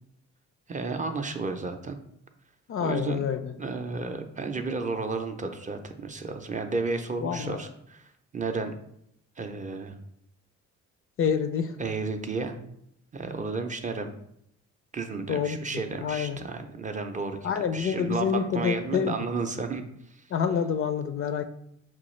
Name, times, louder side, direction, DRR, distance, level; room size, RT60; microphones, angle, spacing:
voice 1, 0.7-2.0 2.8-3.3 3.6-8.7 9.4-10.0 11.8-12.5 13.1-14.1 14.9-20.3, right 4 dB, 25° right, 5 dB, 0.4 m, -32 dB
voice 2, 2.7-3.5 7.2-7.6 11.2-11.7 15.3-15.6 16.0-16.4 17.4-19.2 20.3-21.4, left 7 dB, 45° left, 9 dB, 0.4 m, -27 dB
5.9 x 2.3 x 3.1 m, 0.74 s
cardioid pair, 90°, 30 cm